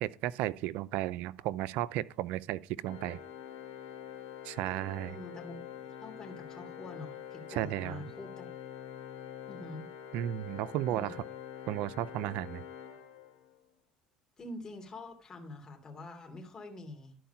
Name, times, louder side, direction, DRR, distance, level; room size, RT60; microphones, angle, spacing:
voice 1, 0.0-3.2 4.4-5.2 7.5-8.0 10.1-11.2 11.7-12.6, right 14 dB, 75° right, 0.5 m, -34 dB
Organ, 2.8-13.7, left 9 dB, 80° left, 1.6 m, -46 dB
voice 2, 5.1-8.5 9.5-9.8 10.9-11.1 14.4-17.2, left 2 dB, 30° left, 2.9 m, -46 dB
12.0 x 4.6 x 5.7 m
supercardioid pair, 95°, 3 cm